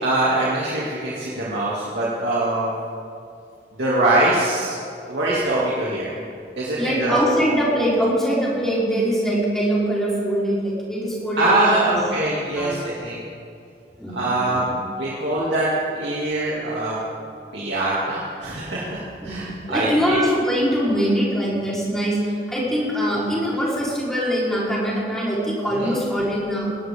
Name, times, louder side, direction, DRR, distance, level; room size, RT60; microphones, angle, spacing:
voice 1, 0.0-2.7 3.7-4.8 5.1-6.1 6.6-7.2 11.4-13.2 14.1-14.6 15.0-15.7 15.9-17.0 17.5-20.2 25.8-25.9, right 2 dB, 80° right, -7 dB, 2.6 m, -23 dB
voice 2, 6.8-12.0 12.5-13.0 14.0-14.8 19.2-26.8, equal, 5° left, -7 dB, 4.2 m, -23 dB
19.0 x 19.0 x 3.7 m, 2.5 s
head